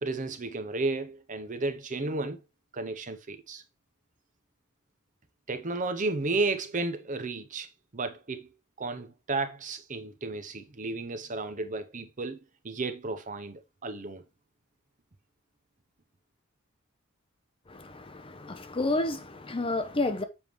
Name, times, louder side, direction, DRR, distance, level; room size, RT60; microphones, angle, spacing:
voice 1, 0.0-2.4 2.7-3.6 5.5-8.5 8.8-12.4 12.6-14.2, right 3 dB, 40° right, 0.7 m, -33 dB
voice 2, 17.7-20.2, left 2 dB, 25° left, 0.6 m, -30 dB
7.1 x 5.2 x 3.1 m
head